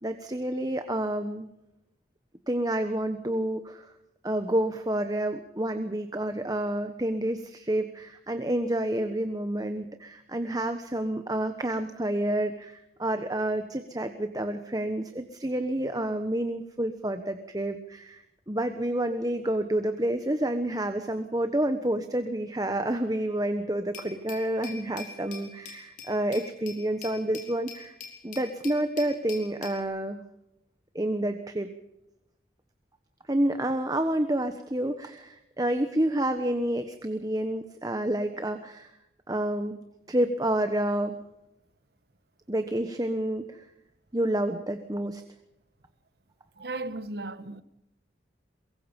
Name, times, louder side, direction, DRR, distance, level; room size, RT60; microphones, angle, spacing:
voice 1, 0.0-1.5 2.5-3.9 4.2-27.9 28.2-30.2 30.9-31.7 33.3-38.9 39.3-39.8 40.1-41.2 42.5-43.7 44.1-45.2, right 1 dB, 20° right, 1.2 m, -29 dB
Glass, 23.9-29.8, left 6 dB, 45° left, 5.2 m, -44 dB
voice 2, 46.6-47.6, right 2 dB, 60° right, 1.3 m, -35 dB
23.0 x 23.0 x 5.4 m
head